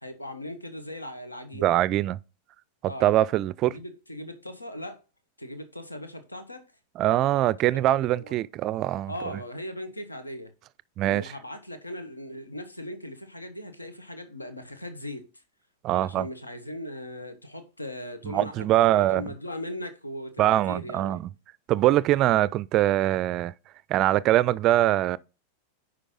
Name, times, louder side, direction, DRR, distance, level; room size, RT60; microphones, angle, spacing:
voice 1, 0.0-1.8 2.8-3.1 3.7-5.0 5.4-6.6 7.7-7.8 8.2-8.3 9.1-10.5 11.1-15.2 15.9-21.2, left 1 dB, 85° left, 1.1 m, -39 dB
voice 2, 1.6-2.2 3.0-3.8 7.0-9.1 11.0-11.3 15.8-16.3 18.2-19.3 20.4-21.2 21.7-23.5 23.9-25.2, right 14 dB, 35° right, 0.4 m, -23 dB
9.9 x 5.1 x 3.8 m
figure-of-eight pair, 90°, 0 cm